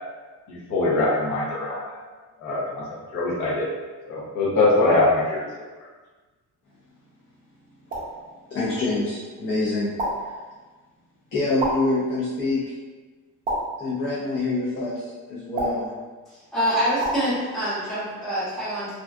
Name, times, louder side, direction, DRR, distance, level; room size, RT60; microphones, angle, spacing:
voice 1, 0.5-2.0 2.4-2.8 3.1-3.7 4.1-5.5, left 2 dB, 70° left, -6 dB, 0.8 m, -22 dB
sound 1, 7.9-8.2 10.0-10.4 11.6-12.0 13.5-13.9 15.6-16.0 17.0-17.3, right 1 dB, 30° right, 0.5 m, -28 dB
voice 2, 8.5-10.4 11.3-12.7 13.8-15.9, left 2 dB, 40° left, -6 dB, 0.4 m, -26 dB
voice 3, 16.3-18.9, equal, ahead, -12 dB, 0.8 m, -26 dB
2.5 x 2.2 x 2.3 m, 1.3 s
cardioid pair, 175°, 31 cm